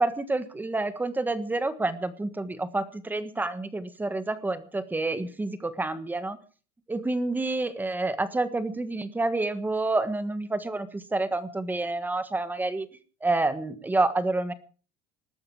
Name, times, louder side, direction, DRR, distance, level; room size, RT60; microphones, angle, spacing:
voice 1, 0.0-6.4 6.9-12.9 13.2-14.5, right 2 dB, 10° right, 12 dB, 1.4 m, -28 dB
20.5 x 12.5 x 4.8 m, 0.39 s
cardioid pair, 145°, 17 cm